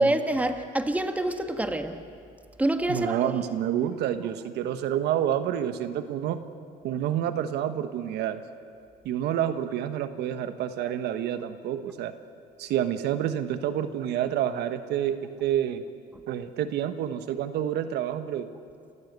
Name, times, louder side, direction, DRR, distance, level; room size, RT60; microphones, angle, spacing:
voice 1, 0.0-2.0 2.6-3.1, right 1 dB, 10° right, 7 dB, 1.5 m, -26 dB
voice 2, 2.9-6.4 6.8-8.4 9.0-12.1 12.6-15.8 16.3-18.5, right 10 dB, 80° right, 10 dB, 1.2 m, -28 dB
28.5 x 15.5 x 8.2 m, 2.3 s
cardioid pair, 110°, 17 cm